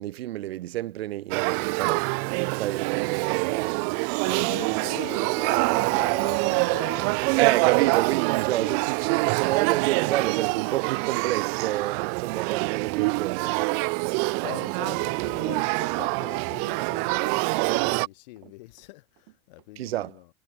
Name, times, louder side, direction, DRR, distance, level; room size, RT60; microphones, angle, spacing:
voice 1, 0.0-2.1 2.5-4.0 4.3-4.5 7.4-13.6 19.8-20.2, right 15 dB, 80° right, 1.6 m, -30 dB
Run, 1.2-1.4 1.7-5.0 5.3-5.8 6.1-12.4 12.8-14.9 15.2-16.1 16.4-19.7, right 18 dB, 55° right, 1.9 m, -45 dB
Male speech man speaking / Child speech kid speaking / Conversation, 1.3-18.1, right 40 dB or more, 25° right, 0.5 m, -25 dB
voice 2, 4.2-7.8 8.6-8.8 14.4-20.3, left 21 dB, 45° left, 1.6 m, -42 dB
supercardioid pair, 180°, 30 cm